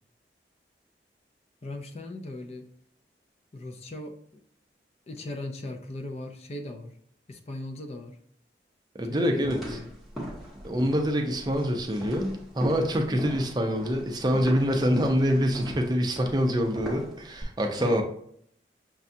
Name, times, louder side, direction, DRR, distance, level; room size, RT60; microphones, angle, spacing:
voice 1, 1.6-2.7 3.5-4.5 5.1-7.0 7.3-8.2 9.0-9.9 17.8-18.0, left 2 dB, 35° left, 4 dB, 0.4 m, -38 dB
voice 2, 8.9-9.8 10.6-18.0, equal, 25° right, 3 dB, 0.5 m, -25 dB
sound 1, 9.4-17.4, right 1 dB, ahead, 0.8 m, -39 dB
6.0 x 2.3 x 2.6 m, 0.66 s
head